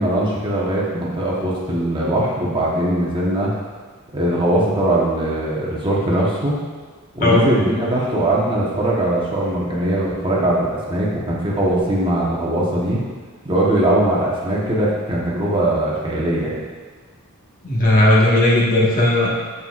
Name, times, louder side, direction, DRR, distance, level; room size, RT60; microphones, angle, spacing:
voice 1, 0.0-3.5 4.1-6.6 7.1-13.0 13.4-16.6, right 1 dB, 25° right, -5 dB, 1.1 m, -20 dB
voice 2, 17.6-19.3, left 1 dB, 40° left, -5 dB, 1.4 m, -15 dB
7.3 x 6.8 x 2.4 m, 1.4 s
head